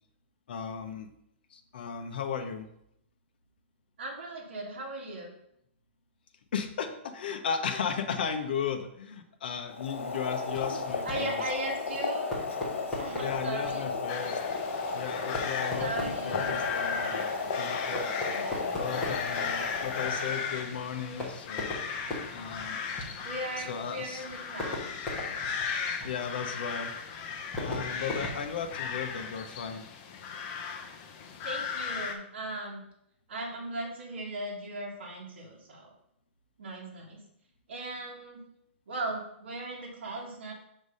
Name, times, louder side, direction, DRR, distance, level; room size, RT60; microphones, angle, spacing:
voice 1, 0.5-1.1 1.5-2.7 6.5-11.4 13.2-14.4 14.9-18.1 18.7-21.7 22.3-22.8 23.6-24.2 26.0-26.9 27.6-29.9, left 7 dB, 50° left, 7 dB, 0.8 m, -35 dB
voice 2, 4.0-5.3 11.0-12.3 13.0-13.9 15.8-16.7 18.2-18.8 23.2-24.8 31.4-32.8 33.3-35.9 36.6-37.2 37.7-38.4 38.9-40.5, right 1 dB, 60° right, -4 dB, 1.9 m, -37 dB
Boiling, 9.7-20.7, left 4 dB, 80° left, 1.3 m, -34 dB
Fireworks, 10.5-29.3, left 1 dB, 5° left, 1.2 m, -41 dB
sound 1, 14.1-32.1, left 6 dB, 20° left, 0.5 m, -37 dB
6.3 x 3.4 x 5.4 m, 0.76 s
hypercardioid pair, 180°, 7 cm